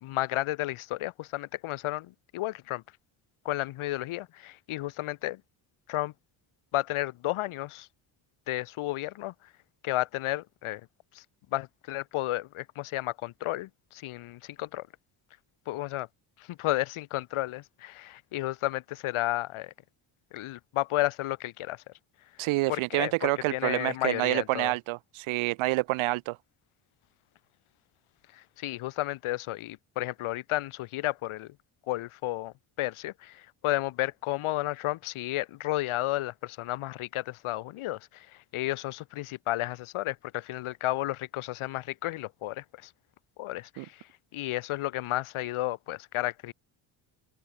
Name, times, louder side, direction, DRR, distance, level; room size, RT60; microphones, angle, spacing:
voice 1, 0.0-2.8 3.4-5.4 5.9-6.1 6.7-7.9 8.5-9.3 9.8-10.8 11.1-11.2 11.5-14.9 15.7-16.1 16.4-19.7 20.3-21.8 22.4-24.7 28.3-31.5 31.9-42.9 43.4-46.5, left 16 dB, 80° left, 1.3 m, -32 dB
voice 2, 22.4-26.4 43.8-43.9, right 21 dB, 75° right, 0.5 m, -28 dB
open air
cardioid pair, 140°, 49 cm